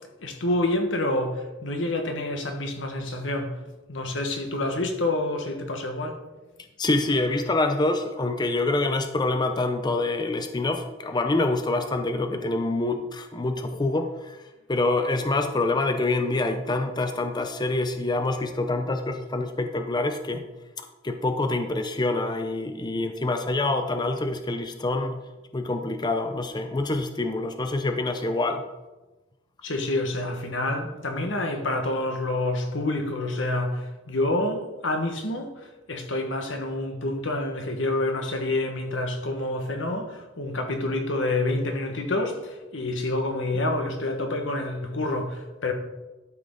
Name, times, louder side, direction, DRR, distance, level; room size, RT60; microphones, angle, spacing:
voice 1, 0.2-3.6 3.9-6.2 29.6-45.7, left 2 dB, 85° left, 1.5 m, -28 dB
voice 2, 6.8-14.4 14.7-20.4 20.8-25.2 25.5-28.6, left 2 dB, 25° left, 0.5 m, -26 dB
12.0 x 6.0 x 3.9 m
head